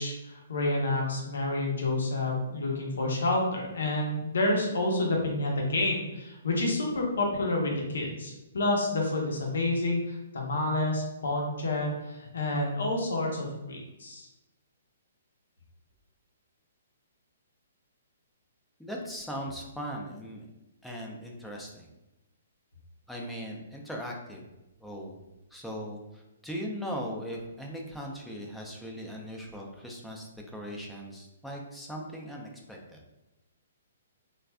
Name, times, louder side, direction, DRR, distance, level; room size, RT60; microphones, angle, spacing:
voice 1, 0.0-14.3, left 2 dB, 75° left, 0 dB, 0.8 m, -29 dB
voice 2, 18.8-20.5 20.8-21.9 23.1-24.4 24.8-25.2 25.5-33.0, equal, ahead, -1 dB, 0.5 m, -39 dB
3.1 x 2.4 x 2.2 m, 0.97 s
hypercardioid pair, 140°, 0 cm